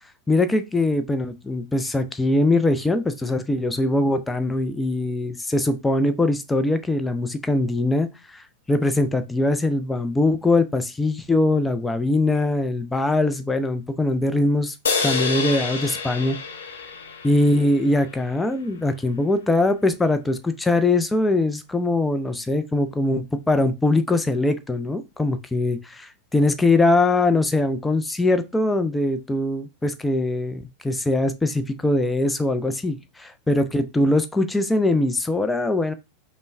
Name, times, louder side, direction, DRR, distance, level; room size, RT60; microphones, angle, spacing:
voice 1, 0.3-14.7 15.0-16.4 17.2-35.9, left 2 dB, 10° left, 0.4 m, -22 dB
sound 1, 14.9-18.3, left 5 dB, 65° left, 0.6 m, -28 dB
5.1 x 2.1 x 2.2 m
figure-of-eight pair, 90°, 0 cm